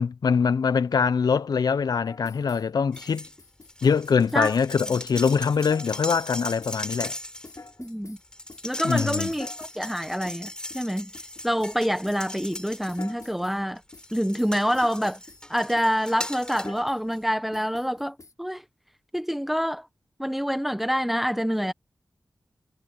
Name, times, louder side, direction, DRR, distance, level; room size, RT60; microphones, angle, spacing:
voice 1, 0.0-3.3 3.8-7.1 8.8-9.3, left 6 dB, 90° left, 0.7 m, -23 dB
sound 1, 2.0-2.7 2.9-4.5 4.8-5.0 5.2-6.3 6.6-8.2 8.5-11.8 12.1-12.3 12.5-13.6 13.9-14.1 14.4-15.5 15.8-15.9 16.2-17.2 17.5-18.3, left 3 dB, 55° left, 4.7 m, -46 dB
sound 2, 2.9-3.4 3.7-13.4 13.9-16.8 17.1-17.2, left 1 dB, 15° left, 4.4 m, -38 dB
voice 2, 7.8-8.2 8.6-11.1 11.4-13.8 14.1-15.2 15.5-18.6 19.1-19.9 20.2-21.7, equal, 5° right, 1.2 m, -26 dB
cardioid pair, 45°, 7 cm